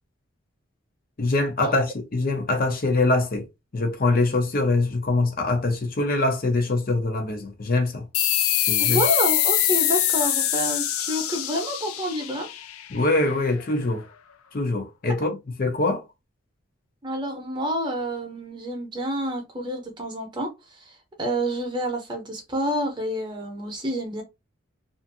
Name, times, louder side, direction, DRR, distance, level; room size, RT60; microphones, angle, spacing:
voice 1, 1.2-3.5 3.7-8.0 8.7-9.0 12.9-14.0 14.5-15.3 15.6-16.0, left 2 dB, 45° left, 0.6 m, -23 dB
sound 1, 8.1-13.3, left 11 dB, 85° left, 0.4 m, -24 dB
voice 2, 8.8-12.5 17.0-24.2, equal, 20° right, 0.7 m, -28 dB
2.5 x 2.5 x 2.6 m
head